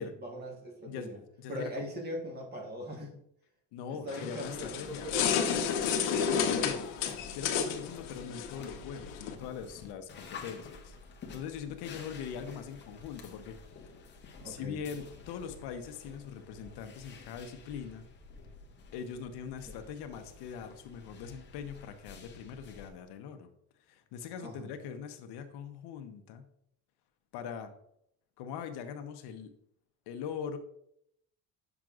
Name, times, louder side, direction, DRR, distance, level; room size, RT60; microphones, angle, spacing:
voice 1, 0.0-1.2 1.5-3.2 3.9-6.7 14.4-14.8 19.7-19.8 24.4-24.7, equal, 25° right, 1 dB, 1.3 m, -41 dB
voice 2, 0.8-1.8 3.7-5.1 6.6-6.9 7.3-13.9 14.4-18.0 18.9-23.5 23.9-26.5 27.3-27.7 28.4-29.5 30.1-30.6, left 7 dB, 70° left, 8 dB, 0.8 m, -42 dB
sound 1, 4.1-9.3, left 7 dB, 90° left, 1.0 m, -31 dB
sound 2, 4.4-22.9, left 4 dB, 25° left, 0.7 m, -50 dB
7.6 x 5.8 x 2.4 m, 0.73 s
cardioid pair, 165°, 42 cm